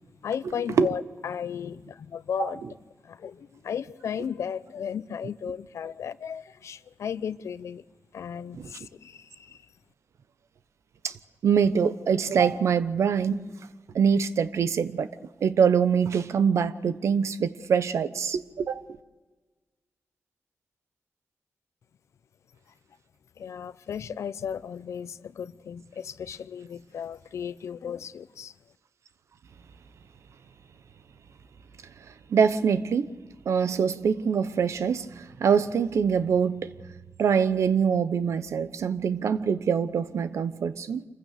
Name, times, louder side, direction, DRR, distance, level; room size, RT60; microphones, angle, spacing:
voice 1, 0.2-2.6 3.0-7.8 8.1-9.6 23.4-28.5, left 8 dB, 85° left, 0.7 m, -35 dB
voice 2, 11.4-13.4 13.9-15.1 15.4-19.0 32.3-33.1 33.4-36.7 37.2-41.1, right 6 dB, 85° right, 1.0 m, -24 dB
26.5 x 15.5 x 6.7 m
wide cardioid pair, 90°, 5 cm